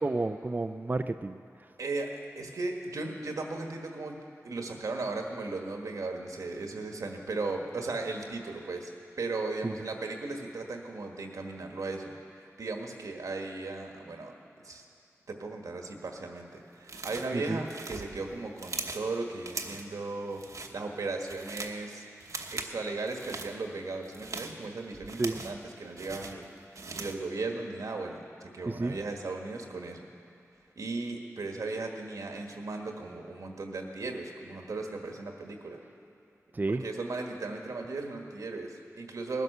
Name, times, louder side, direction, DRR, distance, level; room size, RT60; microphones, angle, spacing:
voice 1, 0.0-1.4 9.6-9.8 17.3-17.6 25.2-25.4 28.7-29.0 36.5-36.8, right 2 dB, 35° right, 8 dB, 0.5 m, -30 dB
voice 2, 1.8-8.9 9.2-12.1 12.6-14.3 14.6-14.8 15.3-20.4 20.7-22.0 22.5-26.5 26.9-30.1 30.8-35.8 36.7-39.4, right 3 dB, 90° right, 2 dB, 1.6 m, -36 dB
sound 1, 16.9-17.4 17.7-19.1 19.4-19.9 20.3-20.7 21.1-21.8 22.2-22.7 23.1-23.5 24.0-25.6 26.0-27.2, right 3 dB, 75° right, 1.1 m, -40 dB
19.0 x 11.0 x 6.7 m, 2.5 s
wide cardioid pair, 75°, 6 cm